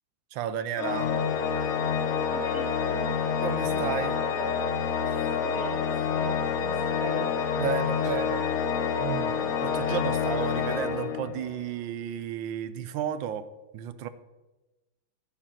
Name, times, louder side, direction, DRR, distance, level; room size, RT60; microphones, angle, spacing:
voice 1, 0.3-1.1 3.4-4.1 5.1-5.2 7.6-8.5 9.0-13.4 13.7-14.1, right 9 dB, 75° right, 13 dB, 1.3 m, -33 dB
Organ, 0.8-11.6, left 6 dB, 75° left, 0.6 m, -28 dB
voice 2, 2.1-3.2 3.6-4.5 5.4-7.3, right 1 dB, 45° right, -4 dB, 3.2 m, -39 dB
8.7 x 7.4 x 5.7 m, 1.1 s
omnidirectional pair, 2.2 m